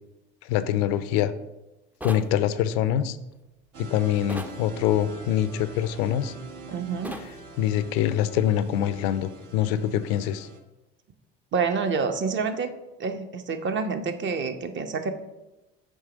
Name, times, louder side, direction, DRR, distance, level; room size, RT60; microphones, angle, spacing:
voice 1, 0.4-1.3 2.0-3.2 3.8-6.3 7.6-10.5, left 11 dB, 70° left, 14 dB, 0.5 m, -24 dB
sound 1, 2.0-2.3 4.3-4.6 7.0-7.3, equal, 5° right, 0.4 m, -36 dB
sound 2, 3.7-10.6, right 3 dB, 65° right, 1.0 m, -44 dB
voice 2, 6.7-7.2 11.5-12.7 13.0-15.1, right 5 dB, 35° right, 7 dB, 0.8 m, -27 dB
7.3 x 3.1 x 5.1 m, 0.99 s
hypercardioid pair, 65°, 31 cm